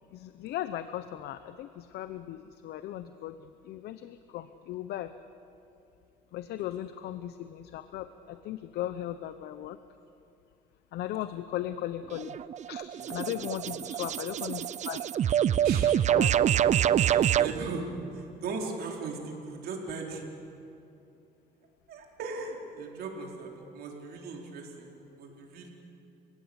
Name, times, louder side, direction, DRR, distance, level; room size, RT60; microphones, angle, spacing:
voice 1, 0.1-5.1 6.3-9.8 10.9-12.4 12.7-15.1 16.2-16.6, left 12 dB, 75° left, 11 dB, 0.8 m, -37 dB
sound 1, 12.1-17.5, right 10 dB, 45° right, 0.6 m, -26 dB
voice 2, 12.9-13.9 15.6-15.9 17.0-17.9 18.1-20.2 21.9-25.7, right 4 dB, 65° right, 0 dB, 4.4 m, -38 dB
29.5 x 17.0 x 8.1 m, 2.8 s
cardioid pair, 110°, 17 cm